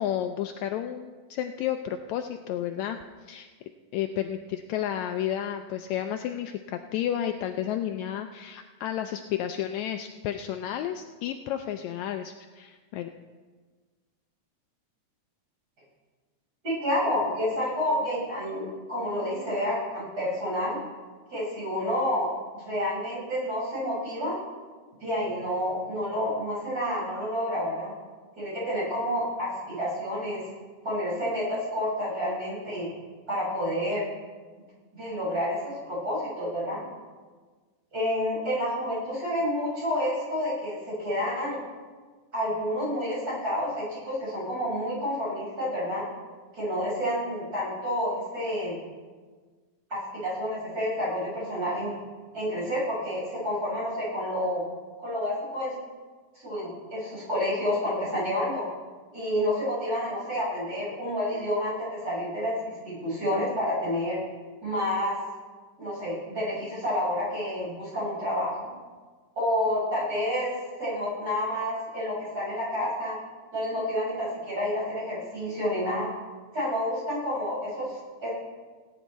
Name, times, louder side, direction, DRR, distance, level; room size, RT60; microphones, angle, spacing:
voice 1, 0.0-3.5 3.9-13.1, left 10 dB, 80° left, 6 dB, 1.7 m, -32 dB
voice 2, 16.6-18.6 18.9-20.8 21.3-22.3 22.5-24.4 25.0-27.9 28.4-30.4 30.8-32.9 33.3-34.0 34.9-36.8 37.9-41.6 42.3-46.1 46.5-48.7 49.9-51.9 52.3-54.6 55.0-55.7 56.4-58.6 59.1-64.2 64.6-65.2 65.8-68.7 69.4-70.5 70.8-73.2 73.5-76.1 76.5-78.3, equal, 30° right, -7 dB, 5.6 m, -29 dB
18.0 x 9.6 x 4.1 m, 1.4 s
omnidirectional pair, 3.5 m